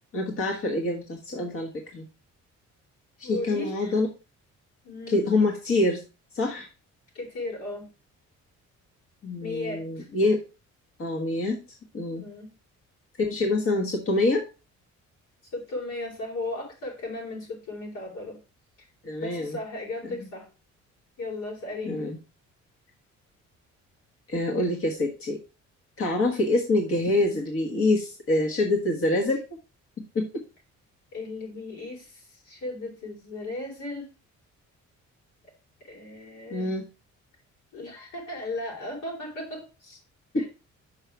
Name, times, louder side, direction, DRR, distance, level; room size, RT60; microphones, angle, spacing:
voice 1, 0.1-2.1 3.2-4.1 5.1-6.0 6.3-6.7 9.2-10.4 11.0-11.6 11.9-12.2 13.2-14.5 19.0-19.6 20.0-20.1 21.8-22.2 24.3-25.4 26.0-29.4 30.1-30.3 36.5-36.8 40.3-40.4, left 2 dB, 45° left, 0 dB, 1.5 m, -25 dB
voice 2, 3.2-4.0 4.8-5.2 7.1-7.9 9.4-10.1 12.1-12.5 15.5-18.4 19.2-20.5 21.2-22.0 31.1-34.1 35.8-36.7 37.7-40.0 40.4-40.5, left 2 dB, 85° left, -2 dB, 4.2 m, -36 dB
5.8 x 5.5 x 4.6 m, 0.30 s
cardioid pair, 90°, 30 cm